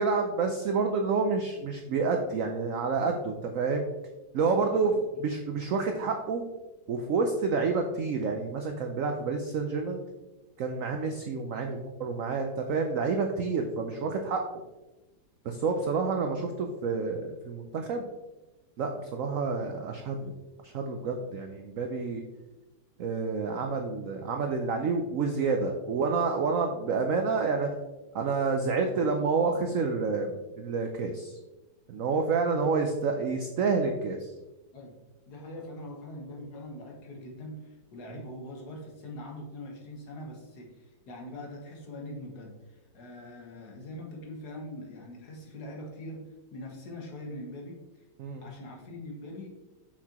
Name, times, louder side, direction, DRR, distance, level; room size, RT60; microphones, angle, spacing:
voice 1, 0.0-3.8 4.3-6.4 6.9-10.0 10.6-14.4 15.4-18.1 18.8-20.3 20.7-22.2 23.0-27.7 28.1-31.4 31.9-34.3 48.2-48.4, right 4 dB, 85° right, 4 dB, 0.7 m, -29 dB
voice 2, 35.3-48.1 48.4-49.5, left 1 dB, 60° left, 0 dB, 1.7 m, -43 dB
6.4 x 5.8 x 2.9 m, 1.1 s
omnidirectional pair, 2.1 m